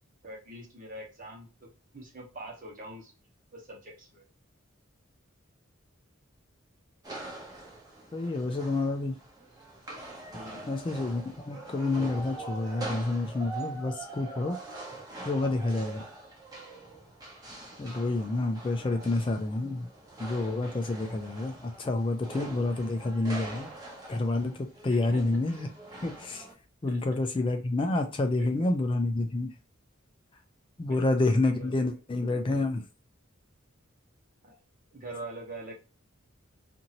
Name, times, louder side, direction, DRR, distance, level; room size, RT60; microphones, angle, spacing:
voice 1, 0.2-3.1 3.5-4.3 10.3-10.8 18.8-19.2 24.9-25.5 26.9-27.2 28.2-28.9 30.8-31.9 34.4-34.6 34.9-35.7, right 1 dB, 40° right, 1.1 m, -45 dB
sound 1, 7.0-26.5, right 2 dB, 20° right, 0.8 m, -43 dB
voice 2, 8.1-9.2 10.7-14.6 15.3-16.0 17.8-19.9 20.2-23.7 24.1-25.7 26.0-26.5 26.8-29.5 30.8-32.8, left 2 dB, 25° left, 0.3 m, -29 dB
2.7 x 2.6 x 2.8 m
head